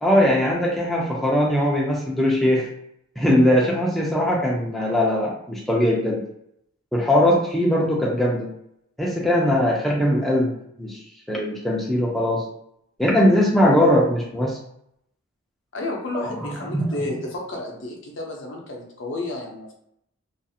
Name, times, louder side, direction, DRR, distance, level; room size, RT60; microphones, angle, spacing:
voice 1, 0.0-2.7 3.2-6.2 6.9-8.5 9.0-10.5 10.8-11.0 11.3-12.4 13.0-14.6 16.1-16.3 16.7-16.8, left 1 dB, ahead, -5 dB, 0.4 m, -20 dB
voice 2, 15.7-19.7, left 2 dB, 55° left, 1 dB, 0.6 m, -31 dB
2.4 x 2.4 x 2.7 m, 0.75 s
head